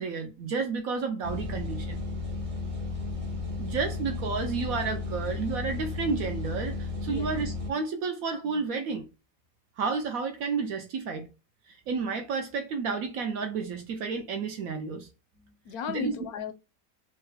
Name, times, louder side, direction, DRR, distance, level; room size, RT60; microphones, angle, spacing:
voice 1, 0.0-2.0 3.6-9.1 9.8-11.3 11.7-15.1 15.9-16.1, right 5 dB, 65° right, 0.9 m, -31 dB
sound 1, 1.2-7.7, left 3 dB, 40° right, 0.4 m, -34 dB
voice 2, 15.4-16.5, left 6 dB, 70° left, 1.0 m, -36 dB
3.9 x 2.2 x 3.2 m
omnidirectional pair, 1.8 m